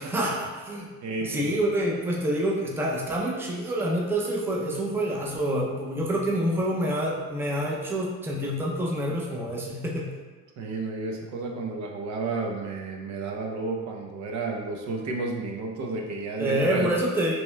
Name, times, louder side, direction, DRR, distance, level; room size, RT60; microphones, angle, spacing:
voice 1, 0.0-0.9 1.2-10.1 16.4-17.3, right 1 dB, 10° right, -3 dB, 0.5 m, -27 dB
voice 2, 1.0-1.6 10.6-16.9, right 3 dB, 70° right, 1 dB, 0.8 m, -32 dB
6.3 x 3.1 x 2.2 m, 1.3 s
cardioid pair, 145°, 30 cm